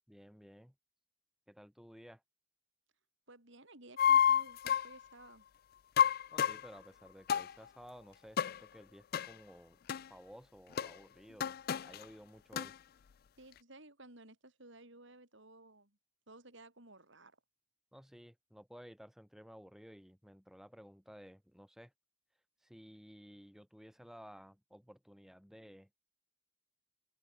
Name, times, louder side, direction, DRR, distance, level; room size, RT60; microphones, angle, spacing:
voice 1, 0.1-0.7 1.5-2.2 6.3-9.8 10.1-11.6 11.8-12.7 17.9-21.9 22.6-25.9, equal, ahead, 3.5 m, -55 dB
voice 2, 3.3-5.4 13.4-16.0 16.3-17.4, right 2 dB, 60° right, 4.5 m, -56 dB
sound 1, 4.0-4.9 6.0-6.7 7.3-7.5 8.4-8.6 9.1-9.3 9.9-10.0 10.8-10.9 11.4-12.0 12.5-12.7, left 8 dB, 45° left, 0.3 m, -29 dB
head